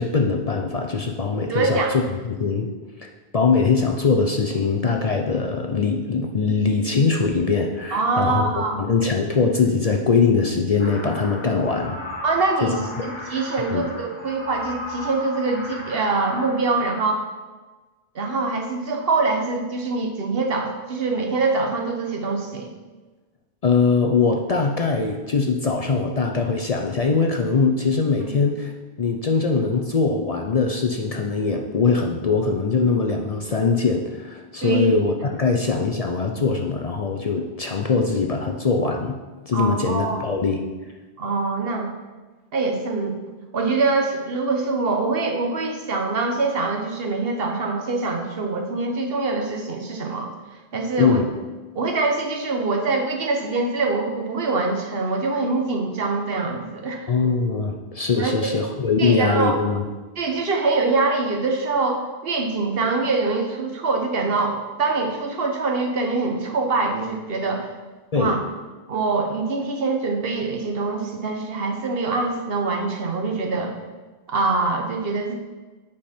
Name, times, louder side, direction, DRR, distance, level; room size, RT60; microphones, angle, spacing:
voice 1, 0.0-2.7 3.0-8.5 8.8-12.0 12.6-13.1 13.7-13.9 23.6-28.7 29.0-39.2 39.5-40.6 51.0-51.3 57.1-59.8 68.1-68.4, left 4 dB, 45° left, 3 dB, 0.6 m, -22 dB
voice 2, 1.5-1.9 7.9-8.8 12.2-17.2 18.1-22.7 28.2-28.3 34.6-34.9 39.5-40.2 41.2-41.9 42.5-43.2 43.5-50.3 50.7-51.2 51.7-57.1 58.2-58.5 59.0-59.6 60.2-67.7 68.1-68.4 68.9-73.7 74.3-75.3, right 3 dB, 70° right, 2 dB, 1.2 m, -24 dB
sound 1, 10.8-16.8, left 1 dB, 25° left, 1.6 m, -36 dB
8.5 x 5.0 x 4.3 m, 1.3 s
omnidirectional pair, 1.0 m